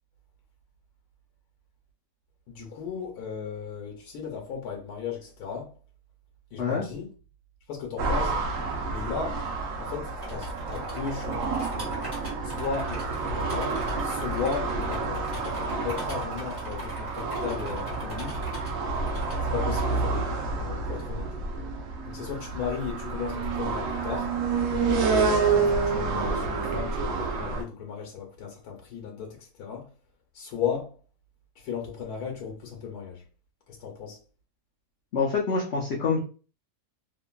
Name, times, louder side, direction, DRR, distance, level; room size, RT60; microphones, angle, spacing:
voice 1, 2.5-5.7 6.5-7.1 7.7-8.4 8.9-9.4 9.8-11.9 12.4-18.4 19.5-21.3 22.1-24.3 25.1-29.9 30.3-30.9 31.6-33.2 33.8-34.2, left 6 dB, 85° left, 1.2 m, -35 dB
sound 1, 8.0-27.6, right 4 dB, 65° right, 0.9 m, -29 dB
sound 2, 10.2-19.4 19.8-19.9, equal, 15° right, 1.2 m, -42 dB
voice 2, 35.1-36.2, left 5 dB, 60° left, 0.7 m, -26 dB
2.9 x 2.5 x 2.2 m
omnidirectional pair, 1.6 m